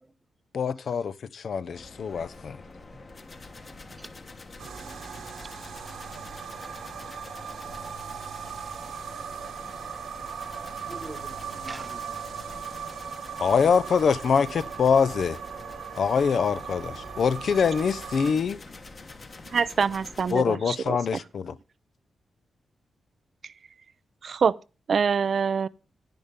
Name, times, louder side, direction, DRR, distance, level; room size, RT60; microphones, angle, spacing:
voice 1, 0.5-2.6 13.4-15.4 16.0-18.6 20.3-21.6, left 6 dB, 55° left, 0.5 m, -24 dB
sound 1, 1.7-20.3, left 3 dB, 30° left, 1.2 m, -46 dB
sound 2, 4.6-18.3, right 7 dB, 80° right, 1.6 m, -38 dB
voice 2, 9.0-9.3 10.8-12.2, right 2 dB, 15° right, 0.7 m, -44 dB
voice 3, 19.5-21.0 24.2-24.5 24.9-25.7, right 6 dB, 50° right, 0.4 m, -25 dB
10.5 x 10.0 x 3.6 m
wide cardioid pair, 155°, 0 cm